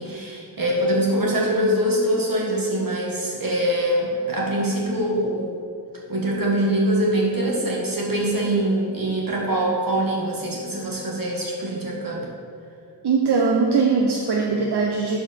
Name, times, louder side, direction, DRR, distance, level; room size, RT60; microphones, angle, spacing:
voice 1, 0.0-5.6 6.1-12.3, right 1 dB, 55° right, -3 dB, 1.9 m, -23 dB
voice 2, 13.0-15.2, right 4 dB, 75° right, 0 dB, 0.8 m, -20 dB
12.0 x 4.8 x 4.5 m, 2.3 s
wide cardioid pair, 105°, 40 cm